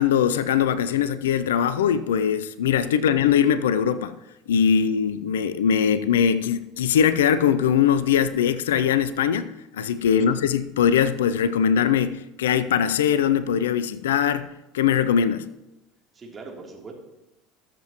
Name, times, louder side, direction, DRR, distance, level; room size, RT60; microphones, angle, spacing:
voice 1, 0.0-4.1 4.5-15.4, left 8 dB, 75° left, 0.5 m, -21 dB
voice 2, 16.1-16.9, right 4 dB, 25° right, 3.0 m, -41 dB
21.0 x 7.6 x 3.0 m
figure-of-eight pair, 70°, 0 cm